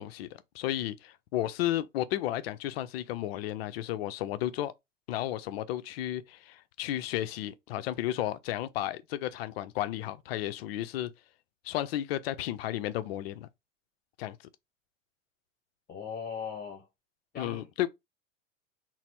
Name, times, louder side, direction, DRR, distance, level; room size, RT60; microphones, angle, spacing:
voice 1, 0.0-4.7 5.1-11.1 11.6-13.5 14.2-14.4 17.4-17.9, left 13 dB, 50° left, 0.5 m, -33 dB
voice 2, 15.9-16.9 17.3-17.7, left 6 dB, 25° left, 1.0 m, -38 dB
4.1 x 2.0 x 4.4 m
figure-of-eight pair, 80°, 39 cm